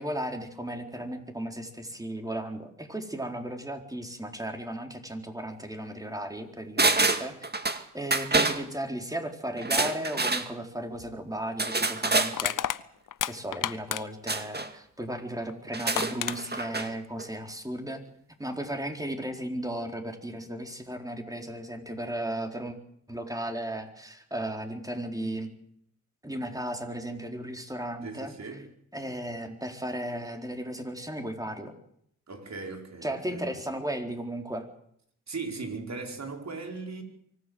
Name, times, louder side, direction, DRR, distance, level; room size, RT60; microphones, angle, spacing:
voice 1, 0.0-7.5 7.9-12.6 13.3-18.0 18.4-22.8 23.1-25.5 26.2-28.3 28.9-31.7 33.0-34.7, right 1 dB, 10° right, 4.2 m, -35 dB
sound 1, 6.8-7.8 8.1-8.6 9.6-10.5 11.6-12.3 14.3-14.7 15.7-16.9 17.2-17.3, right 3 dB, 30° right, 2.2 m, -26 dB
Crushing, 10.9-11.1 12.3-14.3 15.5-15.6 15.9-16.4, left 10 dB, 80° left, 0.8 m, -31 dB
voice 2, 28.0-28.6 32.3-33.5 35.3-37.0, right 4 dB, 60° right, 4.9 m, -38 dB
24.5 x 16.0 x 8.0 m
cardioid pair, 60°, 31 cm